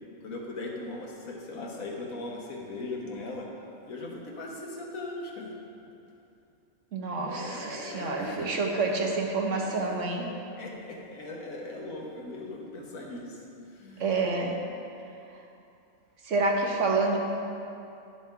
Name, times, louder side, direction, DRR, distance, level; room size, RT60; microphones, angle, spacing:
voice 1, 0.2-3.5 3.9-5.5 7.2-9.1 9.5-10.1 10.6-13.4 13.7-14.2, left 2 dB, 90° left, -1 dB, 1.6 m, -39 dB
voice 2, 6.9-10.3 14.0-14.6 16.2-17.2, right 3 dB, 65° right, 1 dB, 1.3 m, -28 dB
11.5 x 6.8 x 3.7 m, 2.7 s
omnidirectional pair, 1.4 m